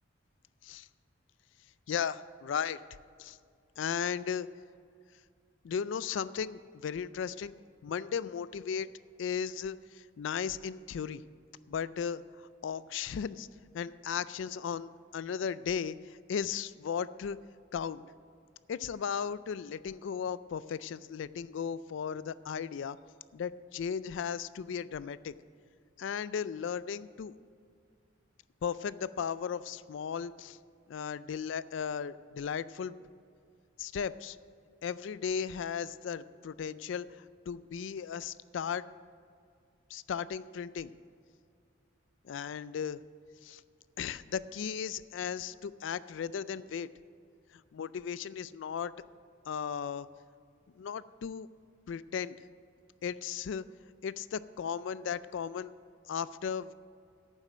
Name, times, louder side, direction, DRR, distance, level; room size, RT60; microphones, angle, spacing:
voice 1, 1.9-2.8 3.2-3.4 3.8-4.5 5.6-7.5 7.8-8.9 9.2-11.2 11.7-12.2 12.6-13.5 13.7-17.4 17.7-18.0 18.7-23.0 23.3-25.4 26.0-27.3 28.6-30.6 30.9-33.0 33.8-34.4 34.8-38.8 39.9-40.9 42.2-43.0 43.4-43.6 44.0-46.9 47.5-48.9 49.5-50.1 50.8-51.5 51.9-52.4 53.0-53.7 54.0-55.7 56.1-56.7, left 7 dB, 70° left, 17 dB, 0.3 m, -36 dB
9.0 x 7.4 x 9.0 m, 2.2 s
head